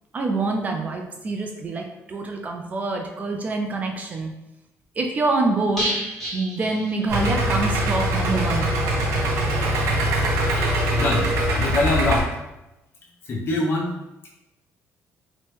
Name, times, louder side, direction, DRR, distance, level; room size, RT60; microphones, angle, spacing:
voice 1, 0.1-4.3 5.0-5.9 6.3-8.7, right 3 dB, 30° right, 2 dB, 0.3 m, -26 dB
sound 1, 5.8-7.6 7.8-7.9 8.3-8.4, right 1 dB, 10° left, 1.0 m, -30 dB
Idling, 7.1-12.2, right 1 dB, 70° right, 0.7 m, -22 dB
voice 2, 10.9-12.3 13.2-13.9, left 2 dB, 45° left, -2 dB, 0.7 m, -24 dB
2.9 x 2.1 x 3.1 m, 0.95 s
cardioid pair, 140°, 5 cm